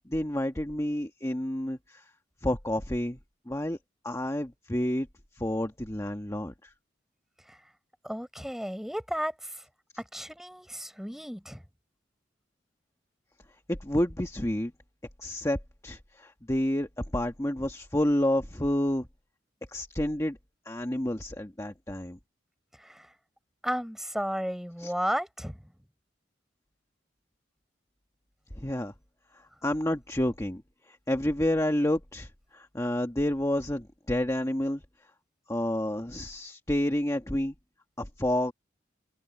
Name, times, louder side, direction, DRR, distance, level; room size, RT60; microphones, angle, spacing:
voice 1, 0.0-2.1 2.4-3.2 3.5-3.8 4.0-5.1 5.3-6.7 13.7-14.7 15.2-15.6 15.8-19.1 19.7-20.4 20.6-22.2 24.8-24.9 28.5-28.9 29.3-34.8 35.5-37.5 38.0-38.5, left 1 dB, 15° left, 1.4 m, -29 dB
voice 2, 8.0-9.6 10.1-11.6 22.8-23.1 23.6-25.6, equal, ahead, 6.7 m, -33 dB
head